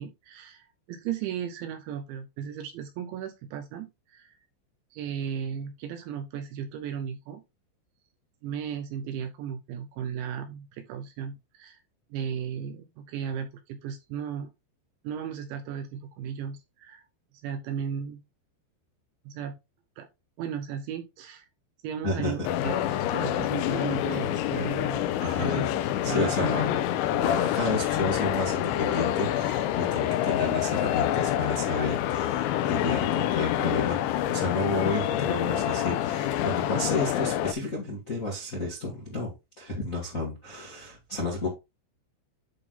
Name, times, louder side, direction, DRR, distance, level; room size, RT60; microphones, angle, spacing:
voice 1, 0.0-4.4 4.9-7.4 8.4-11.8 12.1-14.5 15.0-17.0 17.4-18.2 19.3-19.5 20.0-20.1 20.4-21.5 21.8-25.1 25.4-26.5 27.3-27.5, right 8 dB, 80° right, 2.8 m, -35 dB
voice 2, 22.0-22.5 25.2-25.7 26.0-26.8 27.2-41.5, left 2 dB, 35° left, 1.3 m, -31 dB
sound 1, 22.4-37.5, left 12 dB, 85° left, 2.8 m, -27 dB
11.0 x 3.8 x 3.7 m
omnidirectional pair, 5.7 m